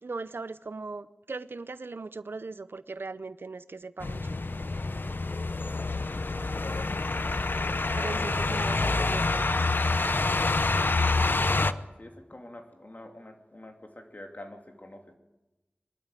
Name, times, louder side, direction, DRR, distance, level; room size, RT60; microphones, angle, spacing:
voice 1, 0.0-4.4 7.9-9.7, right 3 dB, 85° right, 14 dB, 0.7 m, -39 dB
sound 1, 4.0-11.7, left 3 dB, 65° left, 0.7 m, -27 dB
voice 2, 8.0-8.4 8.7-8.8 11.6-15.0, left 1 dB, 50° left, 3 dB, 2.9 m, -45 dB
23.5 x 12.5 x 9.1 m, 1.1 s
wide cardioid pair, 50°, 4 cm